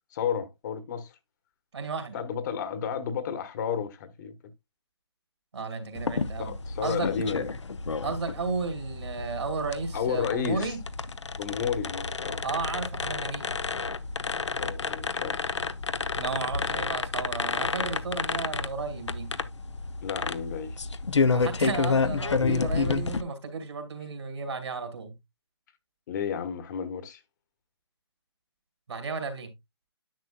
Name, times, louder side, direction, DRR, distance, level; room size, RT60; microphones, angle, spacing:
voice 1, 0.1-1.1 2.1-4.3 6.4-7.5 9.9-10.7 11.4-12.4 14.6-15.6 20.0-20.8 22.4-22.6 26.1-27.2, left 7 dB, 40° left, 1.2 m, -32 dB
voice 2, 1.7-2.2 5.5-6.5 6.8-7.1 8.0-10.8 12.4-13.5 16.2-19.3 21.3-25.1 28.9-29.5, right 4 dB, 75° right, 2.7 m, -33 dB
sound 1, 5.9-23.2, left 4 dB, 90° left, 0.8 m, -30 dB
10.5 x 6.8 x 2.3 m
hypercardioid pair, 145°, 14 cm